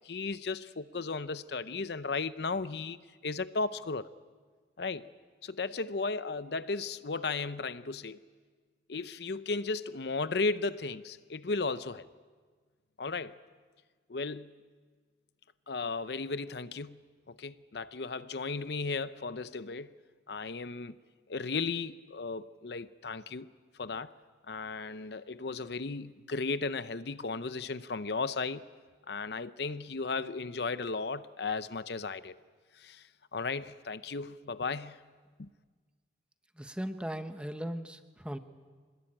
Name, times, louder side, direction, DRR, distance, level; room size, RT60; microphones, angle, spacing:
voice 1, 0.0-3.0 3.2-4.1 4.8-5.1 5.4-8.2 8.9-12.1 13.0-13.4 14.1-14.5 15.7-17.0 17.3-19.9 20.3-21.0 21.3-23.5 23.8-24.1 24.5-28.7 29.1-32.3 32.8-33.0 33.3-35.0 35.4-35.5, left 4 dB, 65° left, 0.7 m, -35 dB
voice 2, 36.6-38.4, equal, 5° right, 1.0 m, -38 dB
26.0 x 20.5 x 8.9 m
head